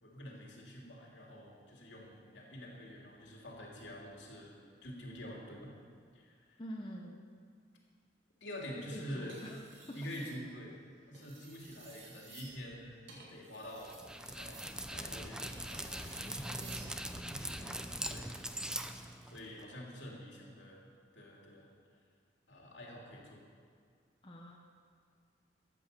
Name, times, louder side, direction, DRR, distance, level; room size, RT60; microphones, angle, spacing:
voice 1, 0.0-4.5 4.8-5.7 6.1-6.6 8.4-9.4 9.9-10.8 11.1-14.0 14.4-16.2 17.3-17.8 18.1-18.3 19.3-20.8 21.1-21.7 22.5-23.4, equal, 75° left, -2 dB, 2.9 m, -47 dB
voice 2, 6.6-7.2 8.9-9.6 9.9-10.0 16.0-17.8 24.2-24.6, equal, 25° left, -1 dB, 1.0 m, -48 dB
sound 1, 9.2-10.4 11.0-16.9 18.4-18.7, right 4 dB, 75° right, 2.2 m, -55 dB
Dog, 13.8-19.6, right 1 dB, 5° right, 0.6 m, -42 dB
13.5 x 8.8 x 6.8 m, 2.1 s
head